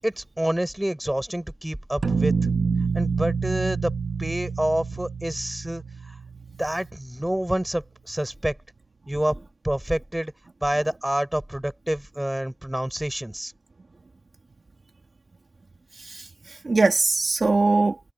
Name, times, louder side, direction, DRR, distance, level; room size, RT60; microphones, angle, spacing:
voice 1, 0.0-2.5 2.9-3.9 4.2-6.2 6.6-8.6 9.1-9.4 9.6-10.3 10.6-13.5, right 1 dB, 10° right, 7.3 m, -28 dB
sound 1, 2.0-6.9, right 5 dB, 85° right, 1.8 m, -27 dB
voice 2, 15.9-18.0, right 3 dB, 55° right, 2.6 m, -22 dB
wide cardioid pair, 95°, 0 cm